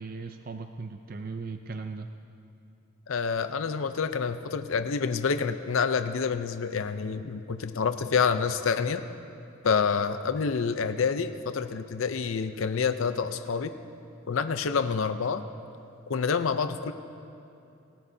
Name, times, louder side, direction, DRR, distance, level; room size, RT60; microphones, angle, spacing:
voice 1, 0.0-2.1, right 4 dB, 40° right, 6 dB, 0.4 m, -38 dB
voice 2, 3.1-9.0 9.6-13.7 14.3-15.4 16.1-16.9, left 5 dB, 70° left, 9 dB, 0.5 m, -27 dB
27.0 x 14.0 x 2.7 m, 2.7 s
head